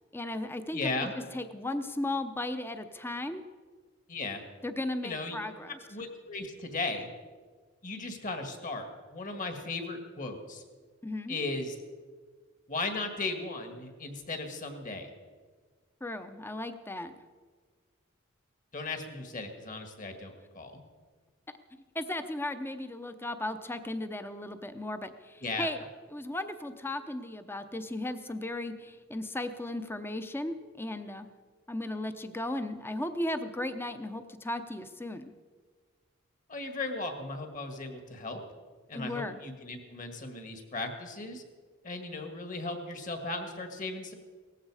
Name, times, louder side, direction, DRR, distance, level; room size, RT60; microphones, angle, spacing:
voice 1, 0.1-3.4 4.6-5.8 11.0-11.4 16.0-17.1 21.9-25.8 26.1-31.3 31.7-35.3 38.9-39.4, left 1 dB, 10° left, 10 dB, 0.7 m, -36 dB
voice 2, 0.7-1.1 4.1-4.4 5.0-5.4 5.9-7.1 7.8-8.9 9.1-10.6 11.3-11.7 12.7-15.1 18.7-20.8 25.4-25.7 36.5-38.4 38.9-41.4 41.8-44.1, left 3 dB, 40° left, 6 dB, 1.9 m, -36 dB
18.0 x 14.5 x 4.9 m, 1.5 s
head